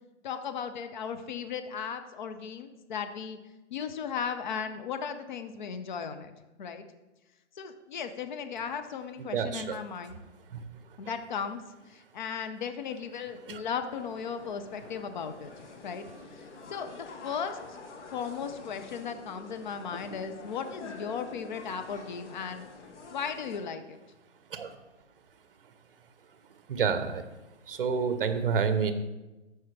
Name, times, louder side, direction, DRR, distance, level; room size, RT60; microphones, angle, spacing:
voice 1, 0.2-3.4 3.7-6.3 6.6-6.8 7.6-10.2 11.0-11.6 11.9-16.1 16.3-17.6 18.1-22.7 23.1-24.0, left 6 dB, 40° left, 8 dB, 0.6 m, -36 dB
voice 2, 9.2-9.8 10.5-10.6 13.5-13.6 24.5-24.7 26.7-27.2 27.7-28.9, right 6 dB, 50° right, 10 dB, 0.8 m, -28 dB
sound 1, 14.0-23.6, left 3 dB, 80° left, 1.3 m, -47 dB
13.0 x 4.6 x 3.3 m, 1.1 s
hypercardioid pair, 160°, 35 cm